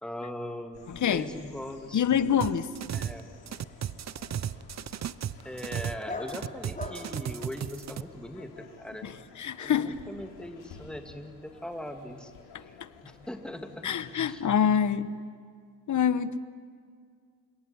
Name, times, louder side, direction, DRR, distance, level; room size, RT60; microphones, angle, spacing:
voice 1, 0.0-2.4 2.9-3.3 5.4-9.3 9.6-12.3 12.7-12.8 13.0-14.4, left 1 dB, ahead, 5 dB, 2.5 m, -40 dB
sound 1, 0.7-14.6, left 5 dB, 75° left, 5.3 m, -53 dB
voice 2, 1.9-2.7 9.0-9.1 9.4-9.9 12.5-12.6 13.8-15.1 15.9-16.4, left 8 dB, 50° left, 14 dB, 1.3 m, -25 dB
sound 2, 2.4-3.2 3.5-6.0 6.3-8.0, right 9 dB, 40° right, 0.9 m, -35 dB
Dog, 3.0-8.3, left 3 dB, 20° left, 4.5 m, -45 dB
28.5 x 17.5 x 9.9 m, 2.1 s
supercardioid pair, 75°, 39 cm